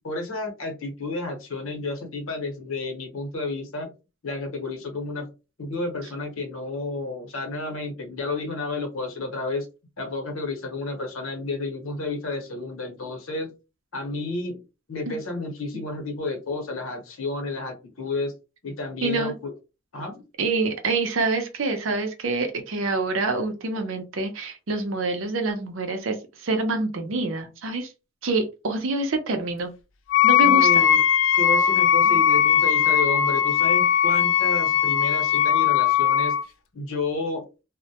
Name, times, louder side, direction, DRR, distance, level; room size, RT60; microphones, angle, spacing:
voice 1, 0.0-3.9 4.2-5.3 5.6-9.7 10.0-13.5 13.9-14.6 14.9-18.3 18.6-19.5 19.9-20.2 30.4-31.0 31.4-37.5, left 3 dB, 85° left, 3 dB, 0.9 m, -31 dB
voice 2, 19.0-19.3 20.4-27.9 28.2-29.7 30.2-30.8, right 3 dB, 70° right, 6 dB, 0.6 m, -26 dB
Wind instrument woodwind instrument, 30.1-36.4, left 9 dB, 65° left, 0.4 m, -19 dB
2.1 x 2.1 x 2.8 m, 0.29 s
head